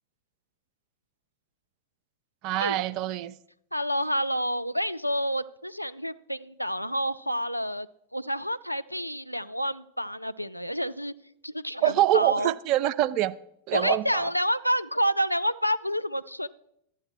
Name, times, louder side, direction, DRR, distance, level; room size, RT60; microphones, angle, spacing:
voice 1, 2.4-3.3 11.8-13.3 13.7-14.3, right 14 dB, 40° right, 0.4 m, -25 dB
voice 2, 3.7-7.9 8.1-11.1 11.4-12.5 13.7-16.5, equal, 90° left, 0.3 m, -29 dB
12.0 x 8.6 x 4.7 m
figure-of-eight pair, 90°, 0 cm